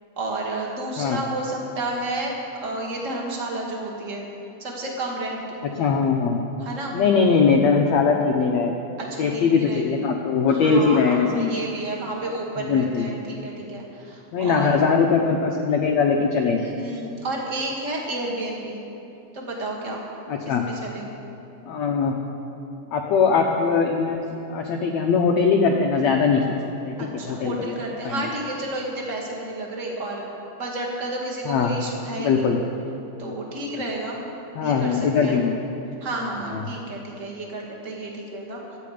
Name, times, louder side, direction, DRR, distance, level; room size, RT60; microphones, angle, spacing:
voice 1, 0.2-2.3 2.6-4.3 4.6-5.4 6.6-6.9 9.0-10.0 10.5-14.8 16.6-18.8 19.3-20.0 20.4-21.1 27.0-30.3 30.6-32.5 33.2-34.2 34.6-35.4 36.0-38.8, right 2 dB, 30° right, -2 dB, 1.4 m, -31 dB
voice 2, 5.8-6.4 6.9-8.8 9.2-11.5 12.6-13.1 14.3-16.6 20.3-20.6 21.7-22.2 22.9-24.2 24.5-26.6 26.8-27.8 28.0-28.2 31.4-31.7 32.2-32.6 34.5-35.6 36.5-36.7, left 5 dB, 85° left, 1 dB, 1.5 m, -21 dB
24.5 x 9.4 x 5.0 m, 2.9 s
omnidirectional pair, 4.4 m